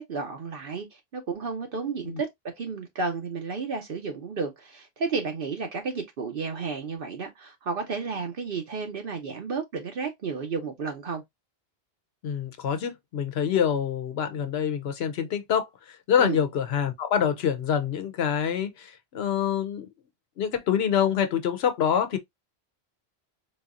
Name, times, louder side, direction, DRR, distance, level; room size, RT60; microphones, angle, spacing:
voice 1, 0.0-2.3 2.6-11.2 16.2-16.4, right 4 dB, 60° right, 0.9 m, -32 dB
voice 2, 12.2-19.9 20.4-22.2, left 8 dB, 80° left, 0.9 m, -26 dB
4.0 x 2.8 x 2.4 m
omnidirectional pair, 1.1 m